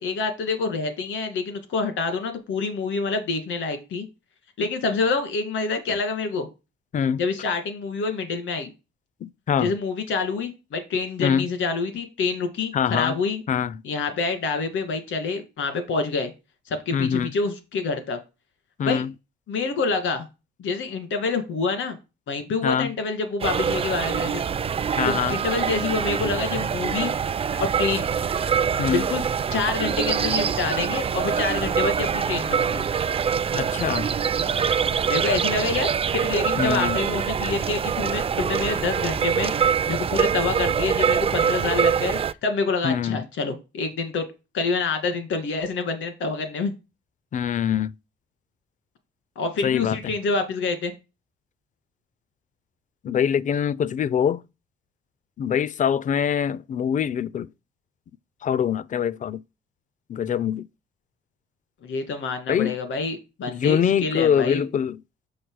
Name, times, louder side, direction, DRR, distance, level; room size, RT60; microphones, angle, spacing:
voice 1, 0.0-4.1 4.6-6.5 7.2-8.7 9.6-13.4 13.8-16.3 16.7-18.2 18.8-19.0 19.5-20.3 20.6-22.0 22.3-24.4 25.0-27.1 27.8-28.1 28.9-29.2 29.5-32.8 35.1-35.9 36.1-39.5 39.9-44.2 44.5-46.7 49.4-50.9 61.8-64.6, left 4 dB, 75° left, 2.0 m, -27 dB
voice 2, 9.2-9.7 11.2-11.5 12.7-13.2 13.5-13.7 16.9-17.3 18.8-19.1 22.6-22.9 25.0-25.4 28.8-29.1 33.5-34.1 36.6-37.0 42.8-43.2 47.3-47.9 49.6-50.1 53.0-54.4 55.4-57.5 58.4-59.4 60.1-60.7 62.5-62.7 63.5-65.0, left 8 dB, 40° left, 0.4 m, -24 dB
sound 1, 23.4-42.3, right 7 dB, 30° right, 0.4 m, -24 dB
6.4 x 5.7 x 4.7 m
cardioid pair, 90°, 20 cm